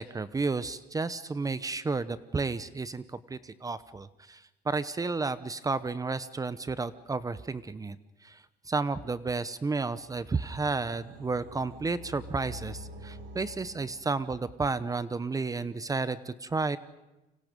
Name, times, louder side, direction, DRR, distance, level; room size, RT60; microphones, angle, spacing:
voice 1, 0.0-8.0 8.2-8.4 8.7-16.8, right 4 dB, 20° right, 15 dB, 0.9 m, -32 dB
sound 1, 9.9-14.6, right 1 dB, 80° right, 7.0 m, -47 dB
30.0 x 25.5 x 5.3 m, 0.99 s
cardioid pair, 110°, 17 cm